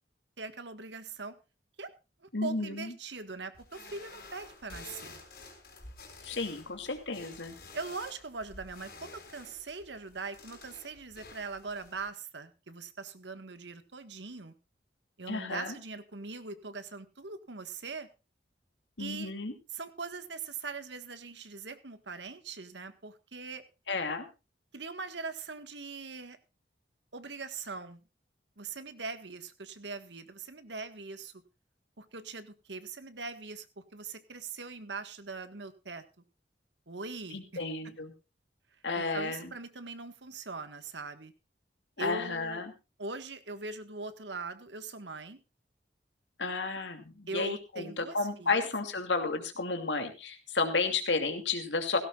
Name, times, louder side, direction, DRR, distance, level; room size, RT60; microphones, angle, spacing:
voice 1, 0.4-1.4 1.8-1.9 2.2-5.2 7.7-14.5 15.2-18.1 19.0-19.3 19.7-23.6 24.7-26.4 27.1-28.0 28.6-31.3 32.0-33.7 33.9-36.0 36.9-38.0 39.0-41.3 42.0-42.6 43.0-45.4 47.3-48.7, right 4 dB, 85° right, 10 dB, 1.6 m, -41 dB
voice 2, 2.3-2.9 6.2-7.6 15.3-15.8 19.0-19.5 23.9-24.3 37.3-38.1 38.8-39.5 42.0-42.7 46.4-52.0, left 3 dB, 90° left, 6 dB, 2.7 m, -32 dB
sound 1, 3.5-12.0, left 3 dB, 55° left, 5.6 m, -51 dB
17.0 x 16.5 x 2.4 m, 0.29 s
head